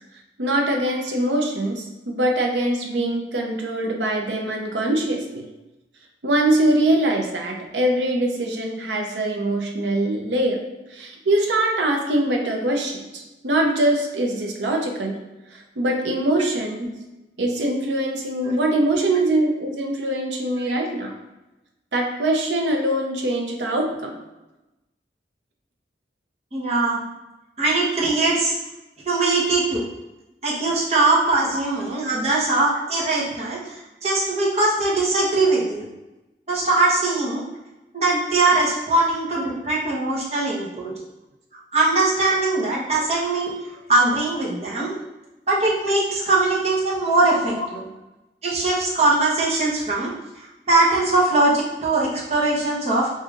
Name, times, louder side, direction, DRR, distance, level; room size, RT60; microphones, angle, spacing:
voice 1, 0.4-5.4 6.2-10.6 10.9-15.2 15.5-16.9 17.4-21.1 21.9-24.2 32.0-32.2 47.5-47.7, right 1 dB, 90° right, 1 dB, 0.7 m, -23 dB
voice 2, 26.5-27.0 27.6-28.6 29.1-29.8 30.4-35.9 36.5-37.4 37.9-40.9 41.7-43.5 43.9-45.0 45.5-47.8 48.4-50.1 50.7-53.1, right 2 dB, 35° right, -6 dB, 1.0 m, -21 dB
5.0 x 2.7 x 2.5 m, 1.0 s
head